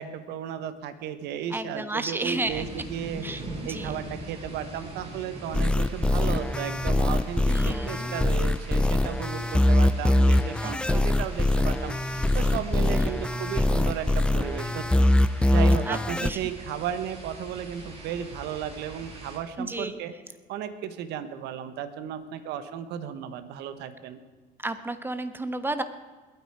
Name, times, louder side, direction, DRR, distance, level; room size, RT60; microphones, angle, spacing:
voice 1, 0.0-3.3 3.6-11.9 12.3-15.0 15.4-20.1 20.5-24.2, right 9 dB, 85° right, 11 dB, 1.2 m, -34 dB
voice 2, 1.5-2.6 3.2-3.4 3.7-3.9 7.5-8.1 10.6-11.1 12.9-13.1 15.8-16.4 19.6-20.0 24.6-25.8, right 2 dB, 10° right, 10 dB, 1.2 m, -32 dB
sound 1, 2.4-19.4, right 2 dB, 35° right, 5.9 m, -42 dB
sound 2, 5.5-16.3, left 1 dB, 5° left, 0.4 m, -23 dB
21.0 x 9.3 x 4.8 m, 1.4 s
cardioid pair, 110°, 17 cm